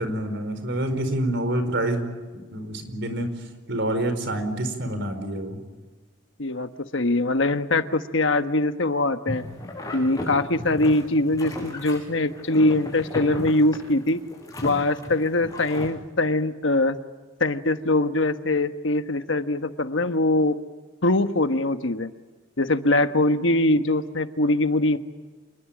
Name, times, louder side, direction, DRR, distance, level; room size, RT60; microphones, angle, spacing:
voice 1, 0.0-2.1 2.5-3.3 3.7-5.6, right 1 dB, 60° right, 9 dB, 4.7 m, -27 dB
voice 2, 6.4-9.4 9.9-14.2 14.6-17.0 17.4-20.6 21.0-22.1 22.6-25.0, left 2 dB, 65° left, 9 dB, 1.3 m, -22 dB
sound 1, 9.3-15.9, left 1 dB, 15° left, 5.9 m, -36 dB
27.0 x 21.0 x 8.7 m, 1.3 s
head